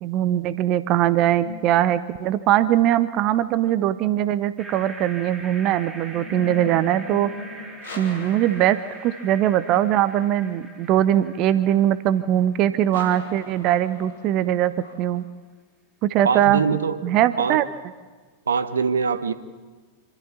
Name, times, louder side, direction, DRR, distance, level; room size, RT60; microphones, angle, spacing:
voice 1, 0.0-7.3 8.0-14.7 15.0-15.2 16.0-16.6 17.0-17.6, right 12 dB, 40° right, 15 dB, 0.7 m, -21 dB
sound 1, 1.4-2.7 5.2-10.1 12.9-15.3, left 3 dB, 65° left, 2.7 m, -40 dB
sound 2, 4.6-12.8, right 2 dB, 10° right, 3.4 m, -42 dB
voice 2, 16.2-17.0 17.4-17.6 18.5-19.3, right 5 dB, 70° right, 12 dB, 1.1 m, -23 dB
26.5 x 13.0 x 8.5 m, 1.4 s
figure-of-eight pair, 90°, 0 cm